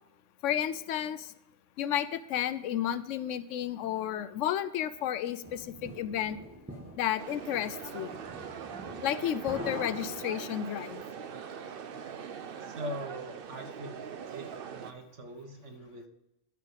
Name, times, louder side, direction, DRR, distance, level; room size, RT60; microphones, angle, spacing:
voice 1, 0.4-1.3 1.8-6.4 7.0-8.1 9.0-11.0, left 10 dB, 85° left, 14 dB, 0.9 m, -32 dB
sound 1, 5.0-10.9, equal, 10° right, 1.5 m, -44 dB
sound 2, 7.2-14.9, right 7 dB, 55° right, 0.8 m, -42 dB
voice 2, 12.7-14.0 14.3-16.1, right 1 dB, 75° right, 4 dB, 1.7 m, -42 dB
13.5 x 4.9 x 5.1 m, 0.90 s
omnidirectional pair, 1.2 m